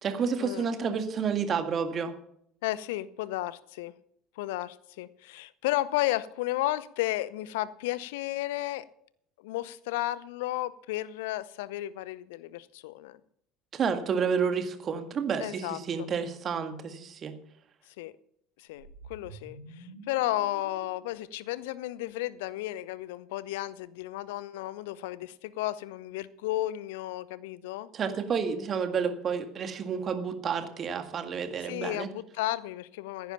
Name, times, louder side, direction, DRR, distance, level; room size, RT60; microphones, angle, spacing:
voice 1, 0.0-2.1 13.7-17.3 27.9-32.1, right 6 dB, 35° right, 1.9 m, -30 dB
voice 2, 2.6-4.0 4.4-8.8 9.4-13.2 15.4-16.1 18.0-18.1 18.6-27.9 31.6-33.3, left 16 dB, 65° left, 0.7 m, -33 dB
sound 1, 18.6-23.0, right 3 dB, 85° right, 1.8 m, -50 dB
15.5 x 10.5 x 5.7 m
figure-of-eight pair, 65°, 0 cm